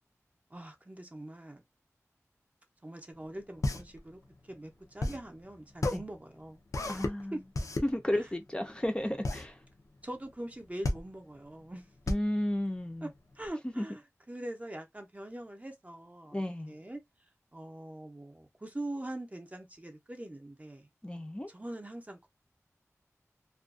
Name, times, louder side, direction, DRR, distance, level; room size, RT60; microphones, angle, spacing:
voice 1, 0.5-1.6 2.8-4.2 4.5-6.6 7.3-7.4 10.0-11.9 13.0-13.1 13.4-14.0 14.3-17.0 17.5-20.9 21.5-22.3, right 1 dB, 25° right, 0.6 m, -43 dB
sound 1, 3.1-13.5, left 2 dB, 80° left, 0.5 m, -35 dB
voice 2, 6.9-7.4 7.8-9.6 12.1-13.1 13.6-13.9 16.3-16.7 21.0-21.5, left 1 dB, 15° left, 0.5 m, -33 dB
2.4 x 2.2 x 2.4 m
wide cardioid pair, 60°, 6 cm